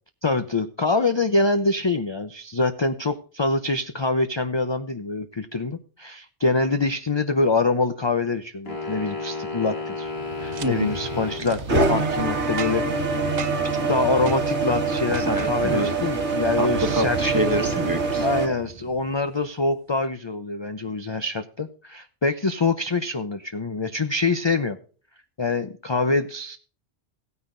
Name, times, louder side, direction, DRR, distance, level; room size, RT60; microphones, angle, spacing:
voice 1, 0.2-10.1 10.4-13.1 13.9-17.2 18.2-24.8 25.4-26.6, left 3 dB, 30° left, 9 dB, 0.6 m, -25 dB
sound 1, 8.7-11.5, left 4 dB, 60° left, 2.7 m, -32 dB
sound 2, 10.2-18.5, right 3 dB, 75° right, 2.0 m, -25 dB
Boom, 10.5-10.7 11.4-11.6 12.6-13.0 13.4-13.7 14.3-14.4 15.1-15.5 16.7-19.4, right 7 dB, 45° right, 0.7 m, -36 dB
voice 2, 10.6-10.9 15.2-15.9 16.6-16.7 16.9-18.3, equal, 20° right, 7 dB, 1.4 m, -26 dB
17.0 x 9.6 x 2.6 m, 0.39 s
omnidirectional pair, 1.2 m